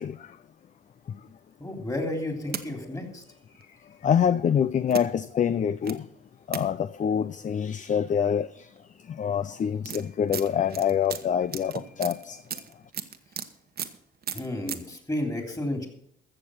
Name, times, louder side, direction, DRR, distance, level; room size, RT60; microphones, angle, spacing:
voice 1, 1.6-3.2 14.3-15.9, left 1 dB, 15° left, 3.2 m, -32 dB
sound 1, 2.1-2.6 3.5-3.6 4.9-5.0 5.8-5.9 6.5-6.7 8.1-8.2 8.5-8.8 9.4-13.5 13.8-14.0 14.2-14.8, right 8 dB, 50° right, 1.2 m, -35 dB
voice 2, 4.0-6.0 6.5-8.5 9.2-11.7 12.0-12.4, left 8 dB, 40° left, 0.5 m, -25 dB
15.0 x 6.8 x 6.3 m
cardioid pair, 90°, 20 cm